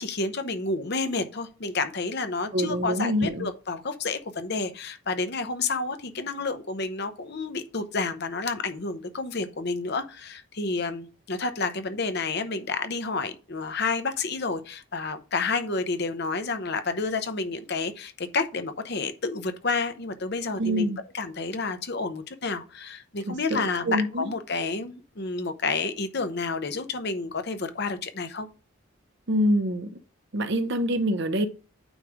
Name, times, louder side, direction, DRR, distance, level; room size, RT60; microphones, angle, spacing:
voice 1, 0.0-28.5, left 4 dB, 50° left, 0.8 m, -30 dB
voice 2, 2.5-3.5 20.6-21.0 23.3-24.3 29.3-30.0 30.3-31.5, equal, 55° right, 0.8 m, -26 dB
9.0 x 3.2 x 4.9 m
head